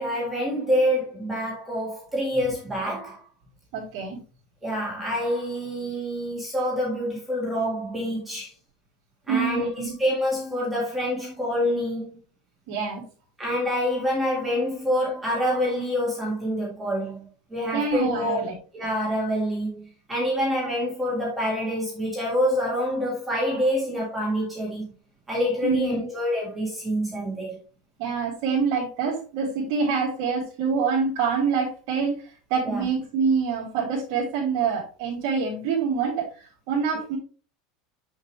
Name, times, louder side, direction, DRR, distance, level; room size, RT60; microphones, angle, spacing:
voice 1, 0.0-3.2 4.6-8.5 9.3-12.2 13.4-18.5 18.7-24.9 25.3-27.6 32.6-32.9, equal, 5° right, 1.8 m, -26 dB
voice 2, 3.7-4.2 9.3-9.9 12.7-13.0 17.7-18.5 25.6-26.1 28.0-32.2 32.5-37.2, right 5 dB, 50° right, 2.6 m, -26 dB
7.1 x 6.4 x 3.2 m
supercardioid pair, 180°, 3 cm